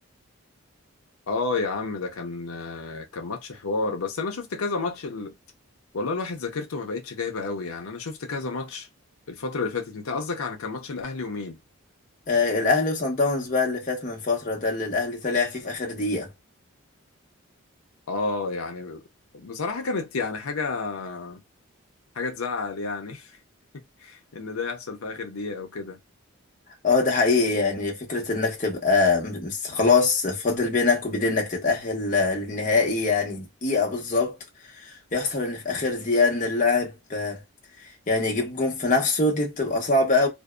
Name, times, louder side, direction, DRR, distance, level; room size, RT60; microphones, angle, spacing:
voice 1, 1.3-5.3 5.9-8.9 9.3-11.6 18.1-19.0 19.3-21.4 22.1-23.4 24.0-26.0, left 3 dB, 80° left, 0.6 m, -31 dB
voice 2, 12.3-16.3 26.8-34.4 34.8-37.4 38.1-40.3, left 3 dB, 35° left, 0.8 m, -23 dB
2.6 x 2.1 x 2.2 m
head